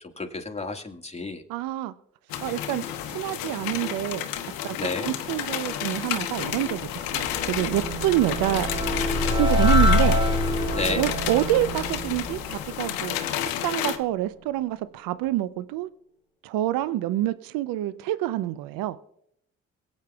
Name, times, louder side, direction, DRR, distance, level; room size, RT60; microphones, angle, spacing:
voice 1, 0.2-1.4 4.8-5.1 10.7-11.0, left 3 dB, 20° left, 1.7 m, -31 dB
voice 2, 1.5-1.9 2.4-4.3 4.6-4.8 5.0-8.7 9.3-10.2 10.9-13.2 13.6-15.9 16.4-19.0, right 14 dB, 75° right, 0.5 m, -27 dB
sound 1, 2.3-14.0, left 11 dB, 80° left, 0.8 m, -31 dB
sound 2, 6.3-13.5, left 1 dB, 15° right, 4.8 m, -26 dB
23.0 x 8.5 x 2.3 m
hypercardioid pair, 40°, 35 cm